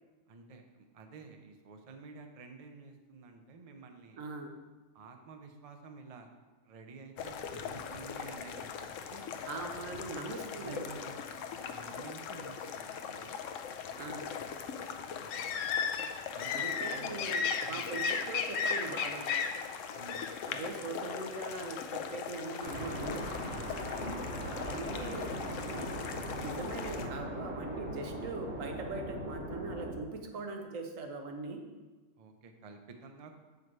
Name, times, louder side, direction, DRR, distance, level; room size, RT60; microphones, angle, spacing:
voice 1, 0.3-4.2 4.9-6.3 6.6-8.7 9.1-9.3 10.6-13.4 15.0-15.6 16.3-17.2 17.6-17.9 19.9-20.2 24.0-24.6 32.2-33.3, right 4 dB, 40° right, 5 dB, 0.6 m, -50 dB
voice 2, 4.2-4.6 9.5-10.8 13.9-14.4 16.5-19.3 20.5-23.3 24.6-25.3 25.7-26.0 26.4-31.6, right 3 dB, 85° right, 4 dB, 1.3 m, -41 dB
sound 1, 7.2-27.1, left 6 dB, 80° left, 0.9 m, -38 dB
Wind instrument woodwind instrument, 22.0-26.9, left 6 dB, 55° left, 0.7 m, -52 dB
sound 2, 22.6-29.9, equal, 60° right, 1.9 m, -40 dB
7.5 x 4.9 x 4.7 m, 1.3 s
omnidirectional pair, 1.3 m